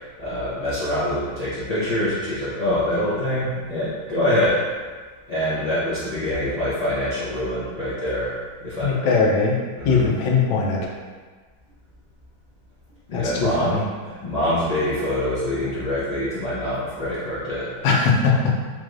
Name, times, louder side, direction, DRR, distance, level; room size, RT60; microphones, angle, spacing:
voice 1, 0.0-4.6 5.3-8.4 8.6-9.0 9.8-10.1 13.1-13.7 14.0-17.7, left 1 dB, 70° left, -13 dB, 0.3 m, -25 dB
voice 2, 8.8-9.5 9.8-10.9 13.1-13.8 17.8-18.6, left 4 dB, 90° left, -2 dB, 1.4 m, -20 dB
4.0 x 3.2 x 2.5 m, 1.5 s
omnidirectional pair, 2.1 m